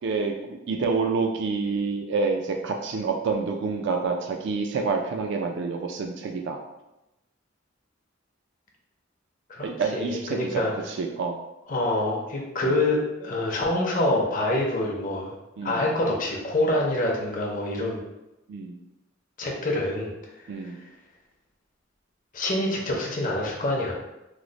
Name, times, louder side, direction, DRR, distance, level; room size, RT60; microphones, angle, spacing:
voice 1, 0.0-6.6 9.6-11.4 12.6-12.7 15.6-15.8 18.5-18.8 20.5-20.8, right 4 dB, 65° right, 3 dB, 0.3 m, -28 dB
voice 2, 9.5-10.7 11.7-15.3 15.6-18.0 19.4-20.1 20.4-20.5 22.3-23.9, left 1 dB, 45° left, -1 dB, 0.6 m, -26 dB
3.1 x 2.0 x 3.8 m, 0.94 s
head